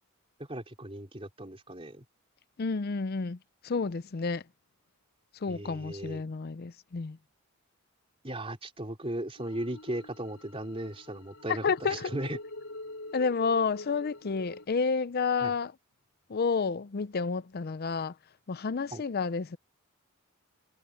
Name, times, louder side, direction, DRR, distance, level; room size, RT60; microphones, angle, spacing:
voice 1, 0.5-2.0 5.5-6.2 8.2-12.4 15.4-15.5 18.9-19.0, right 1 dB, 25° right, 4.1 m, -37 dB
voice 2, 2.6-3.4 3.6-4.4 5.4-7.2 11.5-12.1 13.1-15.7 16.3-18.2 18.5-19.6, left 5 dB, 45° left, 0.5 m, -30 dB
sound 1, 9.4-14.7, left 2 dB, 65° left, 7.4 m, -46 dB
head